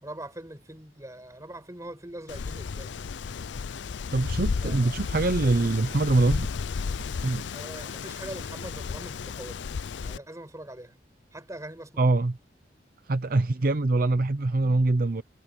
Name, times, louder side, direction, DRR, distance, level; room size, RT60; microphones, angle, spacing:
voice 1, 0.0-3.0 4.6-4.9 7.5-9.7 10.0-11.0 11.3-12.1, right 1 dB, 20° right, 5.4 m, -42 dB
Wind, 2.3-10.2, left 5 dB, 75° left, 0.5 m, -33 dB
voice 2, 4.1-6.5 7.2-7.4 12.0-12.4 13.1-15.2, right 2 dB, 50° right, 0.7 m, -24 dB
head